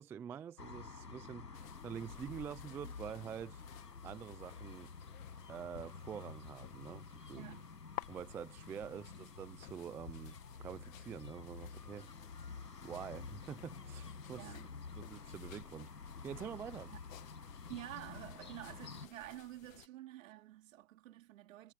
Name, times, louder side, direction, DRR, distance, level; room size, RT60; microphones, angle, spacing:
voice 1, 0.0-3.6 4.0-4.9 5.5-7.4 8.1-12.1 12.8-14.5 14.9-15.9 16.2-16.9, right 8 dB, 5° right, 0.4 m, -46 dB
sound 1, 0.6-19.1, left 4 dB, 90° left, 6.3 m, -50 dB
sound 2, 1.5-19.9, left 13 dB, 55° left, 2.0 m, -56 dB
voice 2, 7.3-7.7 8.9-9.2 14.4-14.7 16.9-17.0 17.7-21.7, right 15 dB, 55° right, 2.8 m, -50 dB
hypercardioid pair, 120°, 48 cm